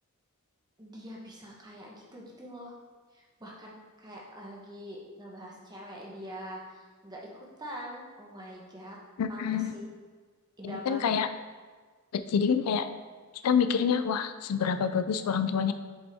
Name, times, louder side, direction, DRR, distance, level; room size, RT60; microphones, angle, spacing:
voice 1, 0.8-2.7 3.1-9.0 9.3-9.8 10.6-11.1, equal, 20° right, -3 dB, 1.1 m, -44 dB
voice 2, 9.2-9.7 10.6-11.3 12.1-12.9 13.4-15.7, left 6 dB, 90° left, 10 dB, 0.4 m, -27 dB
7.0 x 5.3 x 3.5 m, 1.5 s
head